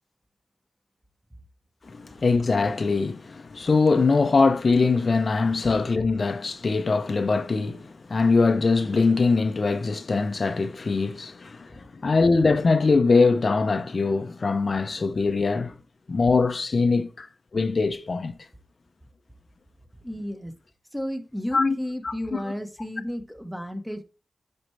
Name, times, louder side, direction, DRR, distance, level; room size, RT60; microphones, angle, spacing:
voice 1, 1.9-15.8 16.1-17.3 17.5-18.3 21.5-21.8 22.0-22.4, left 4 dB, 50° left, 0.6 m, -22 dB
voice 2, 20.0-20.5 20.9-24.0, equal, 5° right, 1.2 m, -33 dB
10.5 x 4.4 x 3.3 m
cardioid pair, 70°, 0 cm